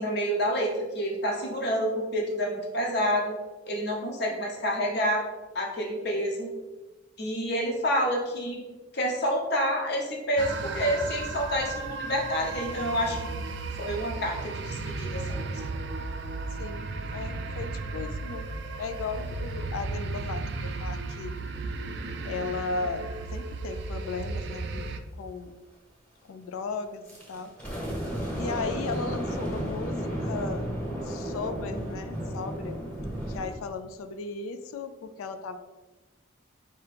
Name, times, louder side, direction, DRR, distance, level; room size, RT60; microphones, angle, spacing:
voice 1, 0.0-3.4 3.7-5.2 5.5-6.5 7.2-8.6 8.9-13.2 13.8-15.5, equal, 55° left, 0 dB, 0.8 m, -28 dB
sound 1, 10.4-25.0, right 3 dB, 55° right, 0.3 m, -35 dB
voice 2, 16.6-18.5 18.8-21.4 22.2-24.9 25.2-25.5 26.2-27.5 28.3-30.7 31.0-32.8 33.3-35.6, left 4 dB, 90° left, 10 dB, 0.4 m, -36 dB
sound 2, 27.1-33.5, equal, 5° left, 1.0 m, -33 dB
4.5 x 2.9 x 3.3 m, 1.2 s
head